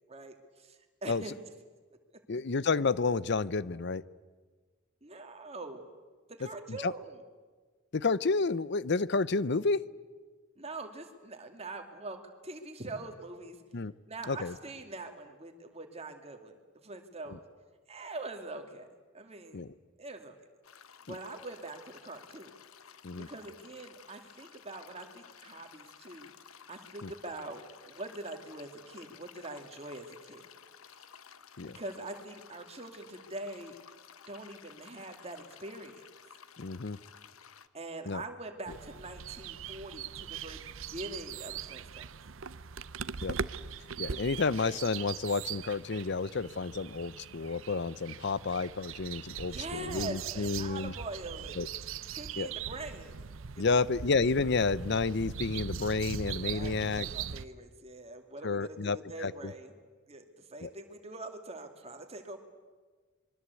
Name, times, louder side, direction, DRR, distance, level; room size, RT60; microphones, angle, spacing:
voice 1, 0.1-1.3 5.0-5.9 6.3-7.2 10.6-13.6 14.1-16.5 16.8-17.4 17.9-18.9 19.1-19.7 20.0-20.4 21.1-22.6 23.2-26.3 26.7-30.4 31.6-33.7 34.3-36.0 37.7-42.1 49.5-51.6 52.1-53.2 53.5-53.9 56.4-59.7 60.1-60.2 60.5-62.4, right 2 dB, 30° right, 5 dB, 2.5 m, -43 dB
voice 2, 2.3-4.0 6.7-6.9 7.9-9.9 13.7-13.9 14.3-14.5 17.3-17.4 19.5-19.7 21.1-21.2 23.0-23.3 27.0-27.1 31.6-31.8 36.6-37.0 38.1-38.2 43.2-43.4 44.0-50.9 51.6-51.7 52.4-52.5 53.6-57.1 58.4-59.5 60.6-60.7, left 4 dB, 55° left, 19 dB, 0.7 m, -30 dB
sound 1, 20.6-37.7, left 7 dB, 85° left, 1.1 m, -54 dB
sound 2, 38.7-57.5, right 7 dB, 70° right, 0.7 m, -41 dB
26.0 x 22.5 x 8.4 m, 1.4 s
head